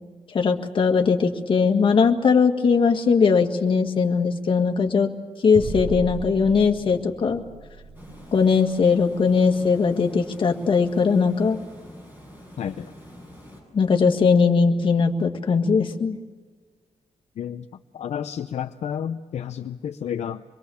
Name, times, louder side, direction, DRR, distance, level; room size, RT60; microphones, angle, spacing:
voice 1, 0.3-5.1 5.4-7.4 8.3-11.6 13.7-16.2, left 5 dB, 50° left, 4 dB, 1.8 m, -20 dB
sound 1, 5.5-10.4, right 3 dB, 65° right, 2.9 m, -37 dB
Water, 7.9-13.6, equal, 15° right, 7.8 m, -46 dB
voice 2, 12.6-12.9 17.4-17.7 17.9-20.4, left 8 dB, 75° left, 6 dB, 0.7 m, -31 dB
25.5 x 22.5 x 7.1 m, 1.5 s
wide cardioid pair, 150°, 11 cm